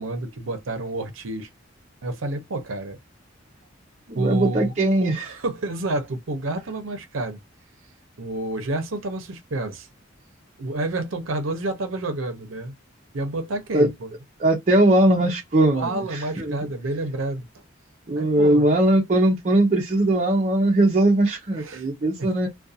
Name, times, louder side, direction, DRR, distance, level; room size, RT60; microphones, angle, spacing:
voice 1, 0.0-1.5 2.0-3.0 4.1-4.7 5.0-7.4 8.2-9.9 10.6-12.7 13.1-14.1 15.7-17.6 18.2-18.6 21.5-21.9 22.2-22.3, right 2 dB, 75° right, 0.6 m, -29 dB
voice 2, 4.1-5.4 13.7-13.9 14.4-16.6 18.1-22.5, right 1 dB, 40° right, 0.6 m, -20 dB
2.4 x 2.2 x 2.6 m
head